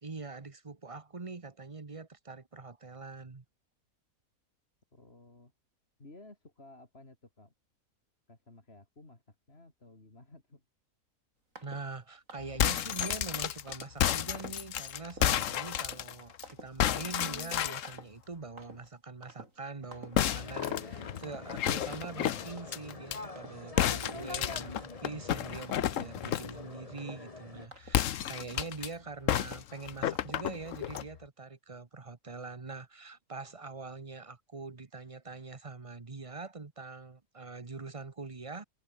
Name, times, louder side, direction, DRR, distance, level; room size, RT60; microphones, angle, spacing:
voice 1, 0.0-3.4 11.6-38.6, right 3 dB, 25° right, 1.1 m, -44 dB
voice 2, 4.9-5.5 6.0-7.5 8.3-10.6, left 2 dB, 40° left, 4.1 m, -55 dB
sound 1, 11.6-11.9 12.3-12.6 13.0-13.3 13.7-14.0 14.4-14.7 15.0-15.3 15.8-16.1 16.4-16.8 17.2-17.4 17.8-18.3 18.6-18.9 19.2-19.6 19.9-20.2 20.6-20.9 21.2-21.6 21.9-22.9 23.3-23.7 24.0-24.4 24.8-25.2 25.6-28.2 28.6-28.9 29.4-29.8 30.1-30.6 30.9-31.1, right 1 dB, 60° right, 7.8 m, -50 dB
sound 2, 12.4-16.4 16.8-18.0 20.1-23.2 23.8-26.6 27.9-28.9 29.3-31.1, left 11 dB, 65° left, 1.1 m, -31 dB
sound 3, 20.2-27.7, left 2 dB, 25° left, 2.0 m, -45 dB
omnidirectional pair, 1.5 m